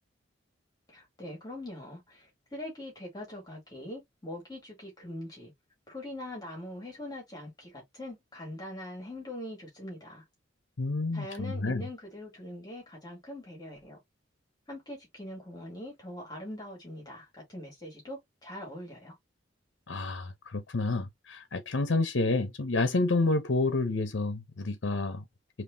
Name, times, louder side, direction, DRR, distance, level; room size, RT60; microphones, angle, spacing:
voice 1, 0.9-5.5 5.9-10.2 11.1-14.0 14.7-19.2, left 1 dB, 20° left, 2.6 m, -42 dB
voice 2, 10.8-11.9 19.9-25.2, left 2 dB, 75° left, 0.8 m, -29 dB
5.2 x 3.1 x 2.7 m
head